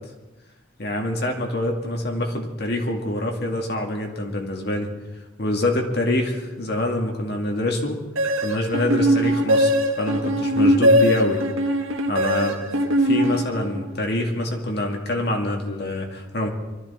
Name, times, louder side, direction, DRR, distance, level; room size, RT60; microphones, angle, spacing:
voice 1, 0.8-4.9 5.4-8.0 8.4-11.5 12.1-12.6 13.1-16.5, left 1 dB, 55° left, 2 dB, 2.1 m, -25 dB
sound 1, 8.2-14.0, equal, 90° right, 1.5 m, -21 dB
24.0 x 13.5 x 4.3 m, 1.1 s
head